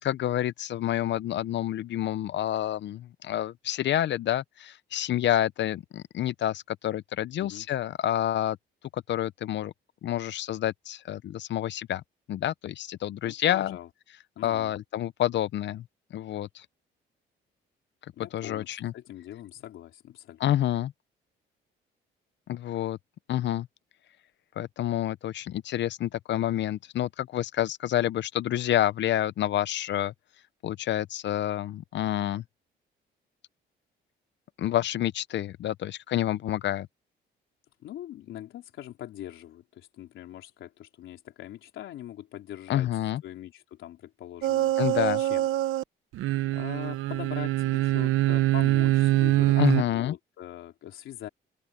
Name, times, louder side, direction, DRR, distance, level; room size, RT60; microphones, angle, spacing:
voice 1, 0.0-8.6 8.9-9.7 10.0-12.0 12.3-13.8 14.4-15.8 16.1-16.7 18.3-18.9 20.4-20.9 22.5-23.0 23.3-23.7 24.6-30.1 30.6-32.4 34.6-36.9 42.7-43.2 44.8-45.2 49.6-50.2, left 12 dB, 65° left, 0.6 m, -28 dB
voice 2, 13.2-13.9 14.4-14.7 18.2-18.7 18.9-20.4 37.8-44.7 45.2-45.5 46.5-51.3, left 12 dB, 80° left, 3.9 m, -42 dB
sound 1, 44.4-45.8 46.1-49.8, right 15 dB, 90° right, 1.0 m, -24 dB
open air
cardioid pair, 90°, 20 cm